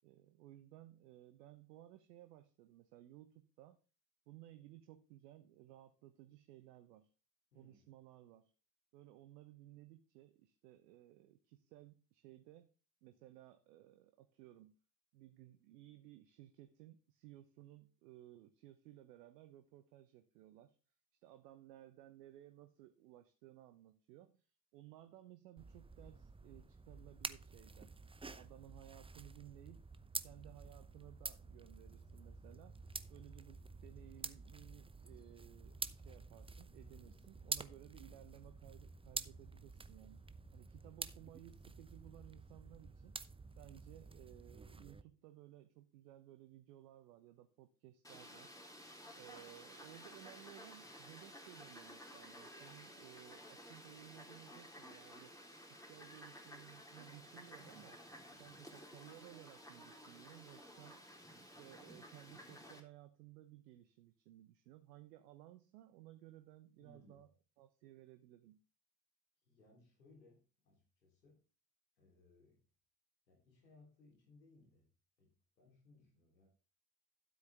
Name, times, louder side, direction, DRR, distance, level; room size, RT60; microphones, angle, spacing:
voice 1, 0.0-3.8 4.3-7.1 7.5-8.5 8.9-12.7 13.0-14.8 15.1-20.8 21.2-24.5 24.7-28.0 28.2-29.9 30.2-40.2 40.5-43.2 43.6-48.5 49.1-55.3 55.7-58.0 58.4-61.0 61.4-67.3 67.6-68.6, right 14 dB, 70° right, 9 dB, 1.1 m, -59 dB
voice 2, 7.5-7.9 36.7-37.2 58.3-58.6 66.8-67.3 69.4-71.4 72.0-72.6 73.3-74.9 75.2-76.5, left 2 dB, 85° left, 0 dB, 3.5 m, -66 dB
sound 1, 25.6-45.0, right 3 dB, 10° right, 0.8 m, -49 dB
Fowl, 48.0-62.8, equal, 5° left, 3.6 m, -55 dB
13.0 x 8.1 x 3.5 m, 0.35 s
figure-of-eight pair, 50°, 50 cm